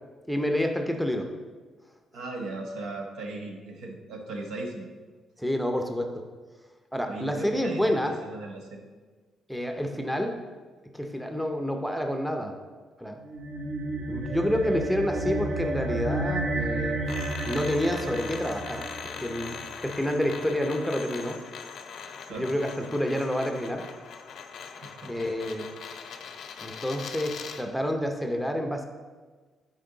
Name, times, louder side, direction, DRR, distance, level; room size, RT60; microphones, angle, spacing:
voice 1, 0.3-1.3 5.4-6.1 6.9-8.2 9.5-10.4 10.9-12.6 13.0-13.2 14.1-17.0 17.5-18.8 19.2-19.5 19.8-21.4 22.4-23.8 25.1-25.7 26.6-28.9, equal, ahead, 4 dB, 0.6 m, -28 dB
voice 2, 2.1-4.9 7.0-8.9 22.2-22.5 24.8-25.2, right 2 dB, 80° right, 2 dB, 1.1 m, -37 dB
sound 1, 13.2-19.9, right 2 dB, 60° right, 1.5 m, -32 dB
sound 2, 17.1-27.7, left 6 dB, 65° left, 0.5 m, -41 dB
8.4 x 4.4 x 3.9 m, 1.4 s
cardioid pair, 110°, 0 cm